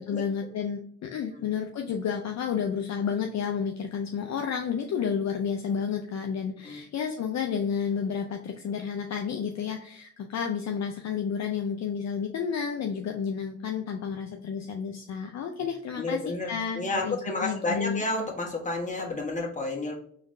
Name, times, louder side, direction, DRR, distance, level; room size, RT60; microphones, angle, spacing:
voice 1, 0.0-16.2 16.5-18.0, left 7 dB, 50° left, 4 dB, 0.5 m, -31 dB
voice 2, 15.9-19.9, left 2 dB, 20° left, 0 dB, 1.2 m, -31 dB
3.9 x 3.2 x 2.6 m, 0.62 s
cardioid pair, 75°, 36 cm